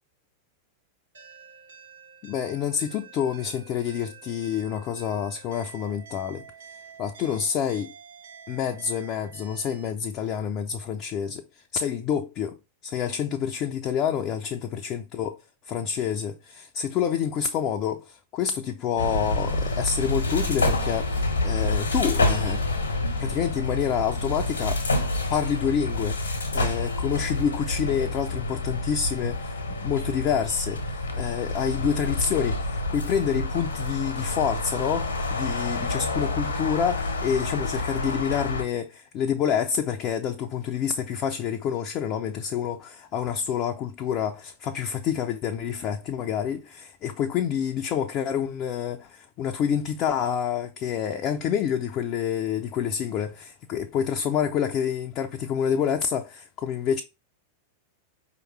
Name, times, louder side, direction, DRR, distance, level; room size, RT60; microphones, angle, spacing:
sound 1, 1.1-9.9, right 6 dB, 65° right, 1.3 m, -48 dB
voice 1, 2.2-7.9 8.5-15.4 15.6-22.9 23.2-24.8 25.3-26.2 26.5-57.0, left 8 dB, 35° left, 0.4 m, -28 dB
sound 2, 19.0-38.6, left 2 dB, 75° left, 1.0 m, -28 dB
4.9 x 3.0 x 3.1 m
figure-of-eight pair, 90°, 0 cm